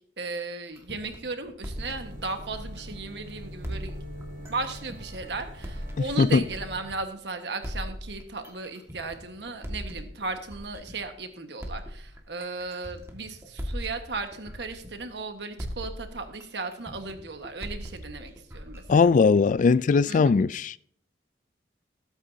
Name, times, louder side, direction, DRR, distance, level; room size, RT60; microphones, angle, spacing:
voice 1, 0.0-4.0 4.5-19.1 20.1-20.4, right 3 dB, 70° right, 1.4 m, -36 dB
sound 1, 0.8-3.2 3.6-7.2 7.6-11.2 11.6-15.3 15.6-19.7, equal, 15° right, 1.7 m, -40 dB
sound 2, 1.7-6.8, equal, 50° right, 3.0 m, -43 dB
voice 2, 18.9-20.5, left 4 dB, 45° left, 0.3 m, -19 dB
20.0 x 8.9 x 2.7 m
head